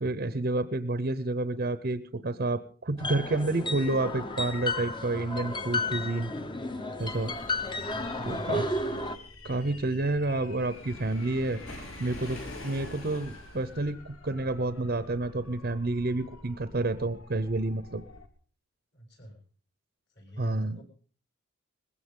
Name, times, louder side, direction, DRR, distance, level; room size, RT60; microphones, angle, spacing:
voice 1, 0.0-6.3 7.0-7.3 8.3-8.7 9.4-11.6 12.0-18.0 20.4-20.8, right 2 dB, 45° right, 12 dB, 0.7 m, -29 dB
sound 1, 3.0-9.2, left 2 dB, 20° left, 0.8 m, -33 dB
sound 2, 7.0-18.3, left 2 dB, 85° left, 1.9 m, -50 dB
voice 2, 7.6-9.0 18.9-19.4 20.1-20.8, right 1 dB, 55° left, 2 dB, 6.9 m, -46 dB
Waves surf, 10.5-13.8, left 1 dB, 70° left, 7.5 m, -43 dB
20.0 x 16.0 x 3.7 m, 0.40 s
head